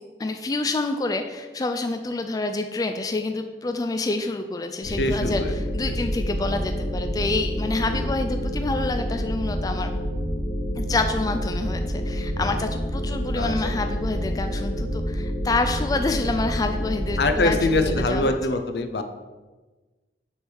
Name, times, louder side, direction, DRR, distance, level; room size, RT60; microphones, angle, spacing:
voice 1, 0.2-5.4 5.7-9.9 10.8-18.3, left 3 dB, 20° left, 6 dB, 0.3 m, -27 dB
sound 1, 4.8-18.1, equal, 45° left, 1.5 m, -28 dB
voice 2, 5.0-5.5 5.9-6.0 7.9-8.1 13.3-13.7 17.2-19.0, left 2 dB, 65° left, 7 dB, 0.6 m, -24 dB
7.1 x 3.5 x 6.3 m, 1.2 s
head